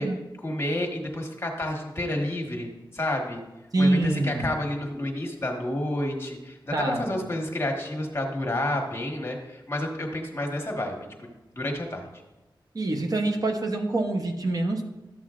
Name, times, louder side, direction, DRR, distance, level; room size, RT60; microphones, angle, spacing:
voice 1, 0.4-3.4 3.8-11.3 11.5-12.1, left 1 dB, 30° left, 2 dB, 1.4 m, -30 dB
voice 2, 3.7-4.5 6.7-7.2 12.7-14.8, right 2 dB, 45° right, 2 dB, 0.8 m, -25 dB
12.5 x 7.6 x 2.5 m, 1.0 s
wide cardioid pair, 110°, 8 cm